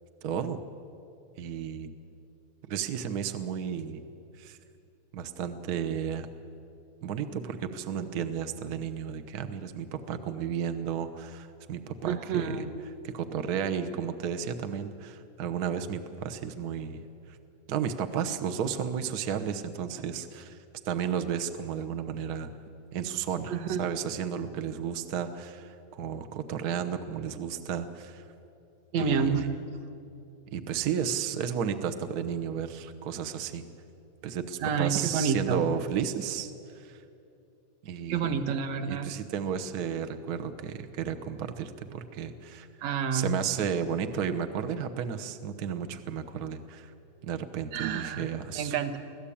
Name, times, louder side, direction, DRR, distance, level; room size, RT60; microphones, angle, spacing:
voice 1, 0.2-0.6 1.4-1.9 2.7-4.0 4.4-4.6 5.1-6.3 7.0-12.7 13.0-17.0 17.7-20.6 20.8-22.5 22.9-28.2 29.0-29.5 30.5-33.6 34.2-36.5 36.7-37.0 37.8-38.4 38.9-42.7 43.1-46.9 47.2-48.7, right 8 dB, 85° right, 8 dB, 0.8 m, -33 dB
voice 2, 12.1-12.7 23.5-23.9 28.9-29.5 34.6-35.7 38.1-39.1 42.8-43.4 47.7-48.3 48.5-49.0, right 6 dB, 70° right, 8 dB, 2.2 m, -29 dB
24.5 x 16.0 x 8.6 m, 2.7 s
omnidirectional pair, 3.3 m